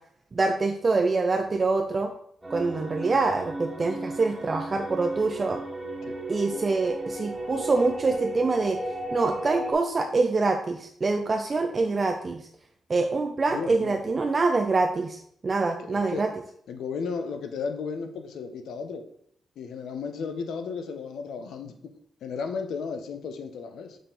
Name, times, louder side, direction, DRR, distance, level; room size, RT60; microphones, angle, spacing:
voice 1, 0.3-2.1 2.5-5.6 6.3-8.8 9.1-12.4 12.9-16.3, right 3 dB, 25° right, 5 dB, 0.4 m, -25 dB
sound 1, 2.4-9.7, right 1 dB, 10° right, 1.4 m, -35 dB
voice 2, 13.5-14.0 15.9-16.2 16.7-19.0 19.6-21.7 22.2-24.0, left 5 dB, 90° left, 7 dB, 0.8 m, -34 dB
6.5 x 4.2 x 3.8 m, 0.67 s
wide cardioid pair, 170°, 0 cm